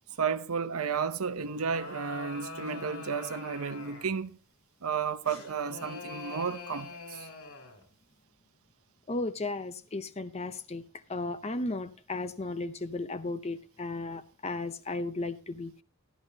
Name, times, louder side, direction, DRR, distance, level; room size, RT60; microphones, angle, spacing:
voice 1, 0.2-4.4 4.8-7.3, right 6 dB, 80° right, 0.8 m, -32 dB
sound 1, 1.4-4.2 5.2-7.8, left 4 dB, 75° left, 2.6 m, -44 dB
voice 2, 9.1-10.8 11.1-15.8, left 2 dB, 30° left, 0.6 m, -35 dB
12.5 x 12.5 x 2.8 m
head